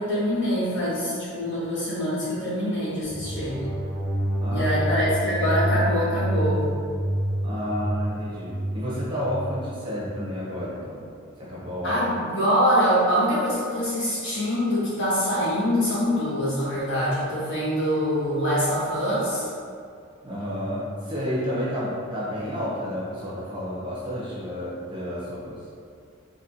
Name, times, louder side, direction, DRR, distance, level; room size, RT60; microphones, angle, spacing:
voice 1, 0.0-3.6 4.5-6.7 11.8-19.5, equal, 50° left, -10 dB, 1.4 m, -24 dB
sound 1, 3.0-10.3, right 1 dB, 10° left, 1.0 m, -28 dB
voice 2, 4.4-4.8 7.4-11.0 11.4-12.0 20.2-25.6, equal, 20° right, -8 dB, 0.7 m, -31 dB
4.2 x 2.9 x 2.8 m, 2.3 s
head